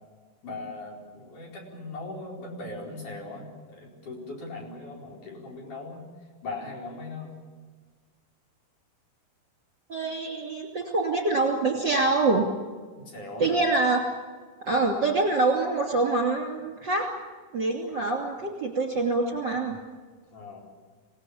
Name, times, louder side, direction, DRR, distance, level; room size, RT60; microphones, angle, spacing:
voice 1, 0.4-6.1 6.4-7.4 13.0-13.6 20.3-20.6, left 2 dB, 55° left, -1 dB, 6.1 m, -39 dB
voice 2, 9.9-12.5 13.4-14.0 14.6-17.1 17.5-19.8, right 3 dB, 30° right, 1 dB, 2.8 m, -25 dB
26.5 x 18.0 x 8.7 m, 1.5 s
omnidirectional pair, 4.5 m